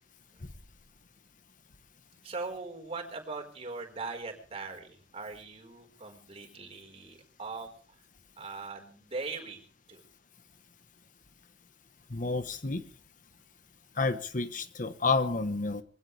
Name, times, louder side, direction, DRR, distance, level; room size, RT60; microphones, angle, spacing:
voice 1, 2.2-8.0 8.4-10.0, right 3 dB, 35° right, 2 dB, 4.5 m, -40 dB
voice 2, 12.1-12.8 14.0-15.8, left 3 dB, 50° left, 11 dB, 1.1 m, -30 dB
24.0 x 16.5 x 3.3 m, 0.38 s
head